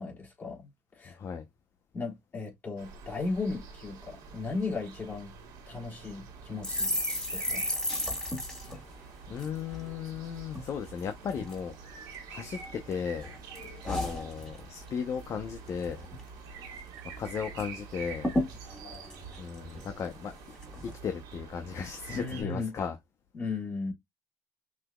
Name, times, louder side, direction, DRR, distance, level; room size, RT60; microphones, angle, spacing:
voice 1, 0.0-1.2 1.9-5.3 5.7-7.0 7.3-7.9 22.1-22.7 23.3-23.9, left 3 dB, 30° left, 3.0 m, -36 dB
voice 2, 1.1-1.4 8.9-9.0 9.3-13.3 13.8-16.1 17.2-18.3 19.4-20.4 21.0-22.9, left 7 dB, 45° left, 0.7 m, -36 dB
sound 1, 2.8-22.4, right 5 dB, 75° right, 2.0 m, -47 dB
sound 2, 6.6-10.2 10.5-10.7 11.0-11.6 12.1-12.9 13.2-14.9 15.2-15.4 15.7-16.3 16.6-16.7 17.0-17.7 17.9-18.0 18.2-20.1 20.6-20.9, left 1 dB, 10° left, 1.9 m, -34 dB
6.0 x 2.9 x 2.2 m
cardioid pair, 105°, 7 cm